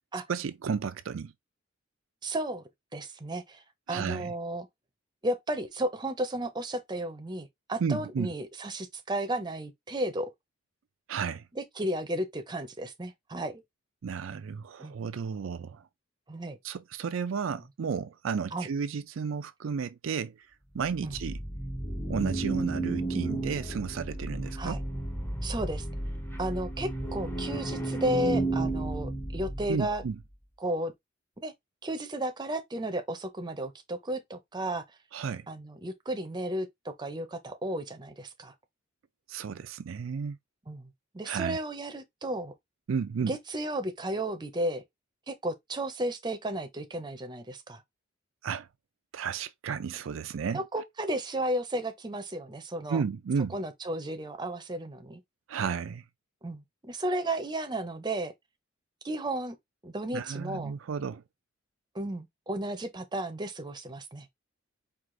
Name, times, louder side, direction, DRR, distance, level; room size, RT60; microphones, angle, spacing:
voice 1, 0.3-1.3 3.9-4.3 7.8-8.3 11.1-11.4 14.0-15.9 16.6-20.3 20.7-21.4 22.1-24.8 29.7-30.2 35.1-35.5 39.3-40.4 41.3-41.6 42.9-43.4 48.4-48.7 49.1-50.6 52.9-53.6 55.5-56.0 60.1-61.2, right 6 dB, 75° right, 0.4 m, -32 dB
voice 2, 2.2-2.6 2.9-3.6 3.9-4.7 5.2-10.3 11.5-13.6 14.8-14.9 16.3-16.6 18.5-18.7 21.0-21.1 24.6-24.8 25.4-25.8 26.4-30.0 30.6-30.9 31.4-31.5 31.8-34.8 35.5-38.5 40.7-42.5 43.2-44.8 45.3-47.8 50.5-53.0 53.5-55.2 56.4-58.3 59.0-59.6 59.8-60.7 61.9-64.3, right 1 dB, 20° right, 0.7 m, -33 dB
sound 1, 20.8-30.1, right 2 dB, 10° left, 0.8 m, -33 dB
4.8 x 2.4 x 3.7 m
head